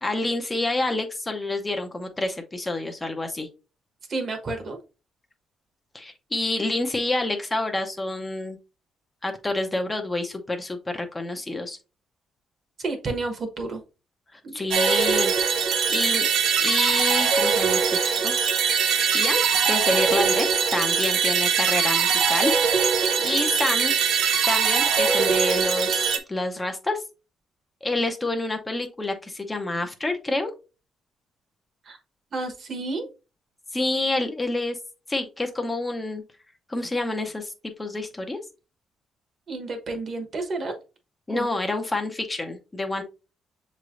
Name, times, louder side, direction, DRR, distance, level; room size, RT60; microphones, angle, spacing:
voice 1, 0.0-3.5 5.9-8.6 9.2-11.8 14.3-15.3 15.6-16.3 16.6-18.3 19.1-22.5 23.2-23.9 24.4-27.0 27.8-30.5 33.7-34.8 35.1-36.2 36.7-37.5 37.8-38.4 41.3-43.0, left 2 dB, 15° left, 4 dB, 0.7 m, -28 dB
voice 2, 4.1-4.8 12.8-13.8 14.4-14.7 31.8-32.0 32.3-33.1 39.5-40.7 41.3-41.5, right 3 dB, 45° right, 5 dB, 1.1 m, -31 dB
sound 1, 14.7-26.2, right 6 dB, 75° right, 0.7 m, -22 dB
6.6 x 3.2 x 2.5 m, 0.31 s
cardioid pair, 110°, 0 cm